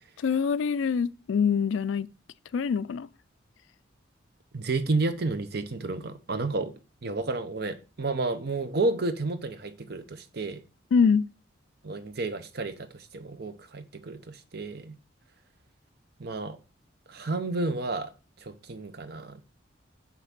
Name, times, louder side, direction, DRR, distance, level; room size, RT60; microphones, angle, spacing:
voice 1, 0.2-2.1 2.5-3.1 10.9-11.3, left 6 dB, 85° left, 0.4 m, -24 dB
voice 2, 4.5-6.7 7.0-10.6 11.8-14.9 16.2-16.6 17.1-18.1 18.4-19.4, right 3 dB, 55° right, 0.7 m, -31 dB
5.7 x 3.6 x 5.8 m
head